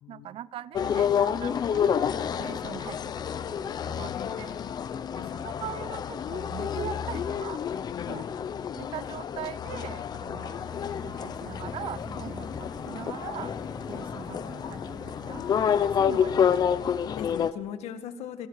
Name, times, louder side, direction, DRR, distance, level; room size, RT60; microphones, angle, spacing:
voice 1, 0.1-2.1 2.4-4.6 5.1-7.6 8.1-8.3 8.8-10.7 11.0-13.6 13.9-15.4 15.8-16.9, right 11 dB, 60° right, 17 dB, 0.7 m, -41 dB
sound 1, 0.8-17.5, left 8 dB, 40° left, 0.9 m, -29 dB
voice 2, 3.9-4.6 5.1-5.4 7.8-8.3 12.2-12.3 17.0-18.5, left 9 dB, 80° left, 8 dB, 1.9 m, -40 dB
sound 2, 10.6-16.7, right 2 dB, 10° right, 1.0 m, -46 dB
27.0 x 23.5 x 4.9 m, 1.1 s
cardioid pair, 165°, 11 cm